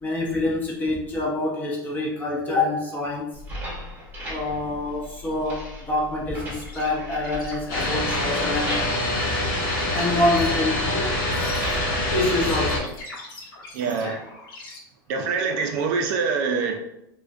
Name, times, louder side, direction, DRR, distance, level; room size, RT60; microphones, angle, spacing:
voice 1, 0.0-3.4 4.3-8.9 9.9-11.2 12.1-12.9, left 2 dB, 15° left, -3 dB, 0.5 m, -26 dB
sound 1, 3.3-13.0, left 1 dB, 15° right, 0.9 m, -38 dB
sound 2, 6.6-14.8, left 2 dB, 80° left, 0.8 m, -42 dB
sound 3, 7.7-12.8, left 1 dB, 45° left, 0.8 m, -25 dB
voice 2, 13.7-14.2 15.1-16.8, right 5 dB, 50° right, 4 dB, 0.4 m, -25 dB
2.4 x 2.1 x 2.4 m, 0.81 s
supercardioid pair, 140°, 12 cm